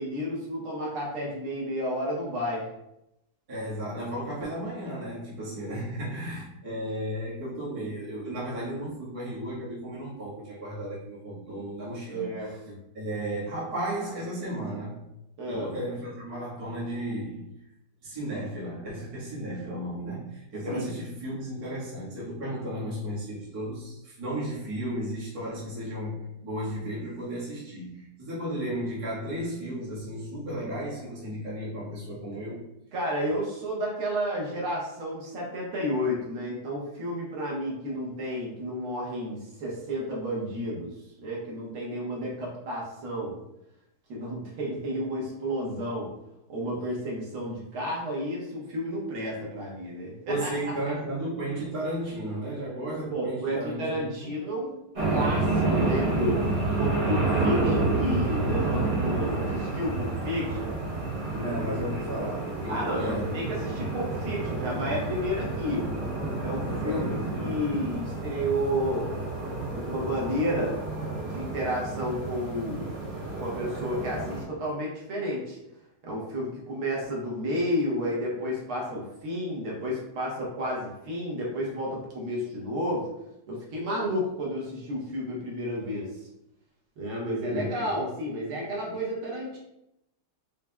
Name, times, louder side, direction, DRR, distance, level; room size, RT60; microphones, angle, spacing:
voice 1, 0.0-2.7 12.1-12.8 15.4-15.8 20.7-20.9 32.9-40.9 41.2-43.4 44.1-46.1 46.5-50.5 53.1-54.7 55.1-56.4 56.8-60.7 62.7-65.9 66.4-67.1 67.4-69.1 69.7-70.8 71.2-72.9 73.4-75.6 76.0-83.1 83.5-86.1 87.0-89.6, equal, 75° right, -3 dB, 1.8 m, -31 dB
voice 2, 3.5-12.6 12.9-15.1 15.5-17.5 18.0-32.6 50.2-54.3 61.3-63.8 66.6-67.2 87.5-87.9 88.8-88.9, right 1 dB, 20° right, -8 dB, 1.0 m, -34 dB
sound 1, 54.9-74.4, right 2 dB, 40° right, 0.8 m, -29 dB
4.7 x 3.2 x 2.2 m, 0.84 s
omnidirectional pair, 2.4 m